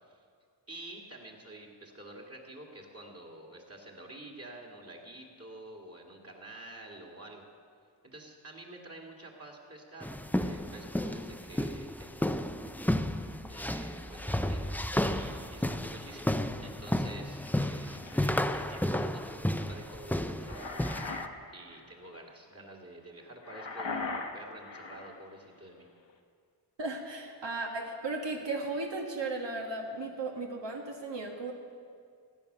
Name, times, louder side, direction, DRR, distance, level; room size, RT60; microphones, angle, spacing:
voice 1, 0.7-7.5 8.0-12.6 13.1-14.6 15.0-20.8 21.5-25.9, right 1 dB, 35° right, -1 dB, 2.2 m, -49 dB
sound 1, 10.0-21.3, left 1 dB, 5° left, 0.4 m, -32 dB
sound 2, 14.1-17.0, right 1 dB, 15° right, 1.5 m, -47 dB
sound 3, 17.5-18.4 20.2-21.3 21.7-21.9 23.4-25.2, left 3 dB, 80° left, 1.4 m, -39 dB
voice 2, 26.8-31.5, right 3 dB, 70° right, 0 dB, 1.6 m, -35 dB
16.5 x 9.6 x 6.7 m, 2.2 s
wide cardioid pair, 95°, 44 cm